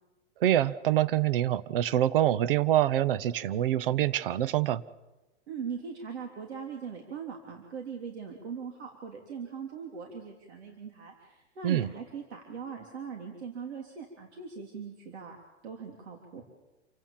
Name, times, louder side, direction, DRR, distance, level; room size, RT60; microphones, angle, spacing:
voice 1, 0.4-4.8 11.6-11.9, right 12 dB, 50° right, 18 dB, 0.8 m, -25 dB
voice 2, 5.5-15.4 15.6-16.4, right 6 dB, 70° right, 2 dB, 3.5 m, -40 dB
28.5 x 17.5 x 7.3 m, 1.1 s
hypercardioid pair, 170°, 35 cm